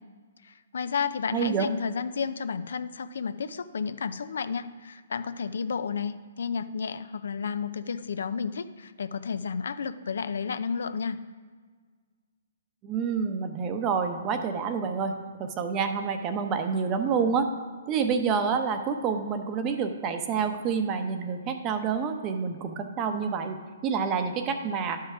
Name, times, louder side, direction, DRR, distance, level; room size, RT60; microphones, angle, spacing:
voice 1, 0.4-11.2, left 6 dB, 75° left, 12 dB, 0.5 m, -32 dB
voice 2, 1.3-1.7 12.8-17.5 17.9-25.0, right 6 dB, 25° right, 7 dB, 0.8 m, -28 dB
10.5 x 5.6 x 4.8 m, 1.5 s
hypercardioid pair, 150°, 0 cm